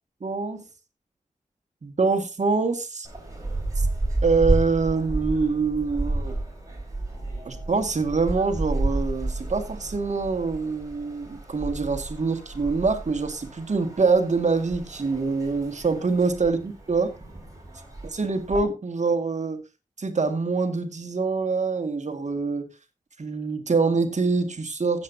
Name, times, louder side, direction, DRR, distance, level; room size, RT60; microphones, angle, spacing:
voice 1, 0.2-0.6 1.8-3.1 4.2-6.3 7.5-17.1 18.1-19.6 20.0-22.7 23.2-25.0, right 4 dB, 60° right, 2.0 m, -25 dB
sound 1, 3.0-18.6, right 2 dB, 25° right, 4.8 m, -31 dB
16.0 x 7.8 x 2.8 m
cardioid pair, 55°, 14 cm